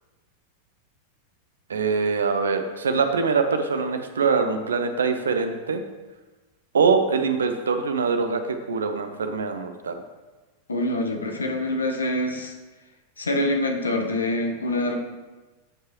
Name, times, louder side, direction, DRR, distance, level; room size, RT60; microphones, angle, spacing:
voice 1, 1.7-5.8 6.7-10.0, right 5 dB, 70° right, 7 dB, 0.7 m, -23 dB
voice 2, 10.7-12.5 13.2-14.9, left 1 dB, 75° left, 3 dB, 0.9 m, -25 dB
13.0 x 4.7 x 2.9 m, 1.2 s
figure-of-eight pair, 90°, 0 cm